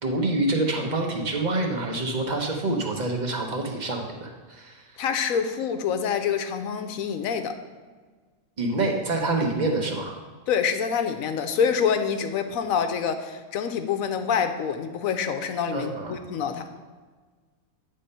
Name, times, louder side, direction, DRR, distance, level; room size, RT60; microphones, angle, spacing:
voice 1, 0.0-5.0 8.6-10.1 15.7-16.2, right 2 dB, 35° right, 2 dB, 1.0 m, -27 dB
voice 2, 5.0-7.6 10.5-16.7, left 7 dB, 75° left, 7 dB, 1.1 m, -26 dB
9.0 x 3.7 x 5.4 m, 1.4 s
omnidirectional pair, 1.5 m